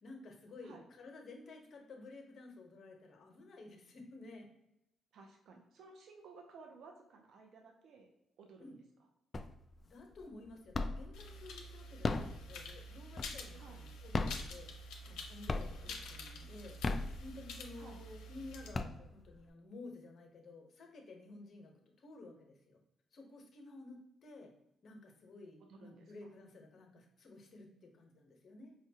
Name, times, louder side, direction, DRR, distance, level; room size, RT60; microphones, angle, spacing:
voice 1, 0.0-4.5 8.6-8.8 9.9-14.7 15.1-16.8 17.2-21.7 22.0-22.8 23.1-24.5 24.8-28.7, left 2 dB, 55° left, 2 dB, 0.9 m, -53 dB
voice 2, 5.1-8.1 8.4-8.7 13.5-13.8 15.9-16.0 17.8-18.0 25.7-26.3, right 4 dB, 70° right, 2 dB, 0.6 m, -56 dB
sound 1, 9.3-9.8 10.2-11.2 11.8-13.6 14.0-15.2 15.5-16.0 16.6-17.7 18.2-18.3 18.6-19.5, left 3 dB, 35° left, 0.3 m, -36 dB
sound 2, 11.1-18.7, left 1 dB, 90° left, 0.6 m, -48 dB
4.9 x 2.3 x 2.8 m, 0.86 s
cardioid pair, 90°, 0 cm